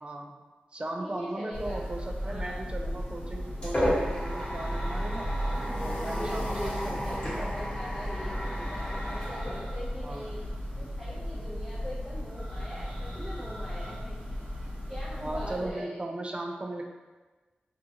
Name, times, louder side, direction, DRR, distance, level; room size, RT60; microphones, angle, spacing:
voice 1, 0.0-0.4 0.7-5.3 5.8-7.5 10.0-10.3 15.2-16.9, right 1 dB, 35° right, 2 dB, 0.3 m, -37 dB
voice 2, 1.0-1.8 2.2-2.6 5.5-10.4 10.8-14.1 14.9-16.0, equal, ahead, -10 dB, 0.6 m, -41 dB
Church bell, 1.5-15.8, equal, 75° right, 0.9 m, -35 dB
sound 1, 2.9-10.3, equal, 35° left, 0.9 m, -34 dB
2.5 x 2.2 x 2.7 m, 1.2 s
wide cardioid pair, 70°, 3 cm